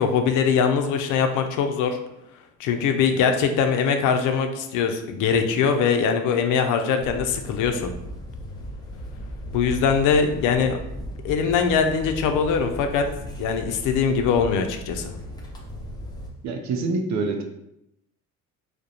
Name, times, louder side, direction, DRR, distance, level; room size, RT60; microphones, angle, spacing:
voice 1, 0.0-2.0 2.6-7.9 9.5-10.8 11.2-13.1 13.4-15.1, left 6 dB, 60° left, 6 dB, 0.4 m, -22 dB
sound 1, 7.0-16.3, equal, 10° left, 0.6 m, -36 dB
voice 2, 16.4-17.4, right 3 dB, 50° right, 5 dB, 0.5 m, -26 dB
2.3 x 2.1 x 2.8 m, 0.82 s
supercardioid pair, 75°, 36 cm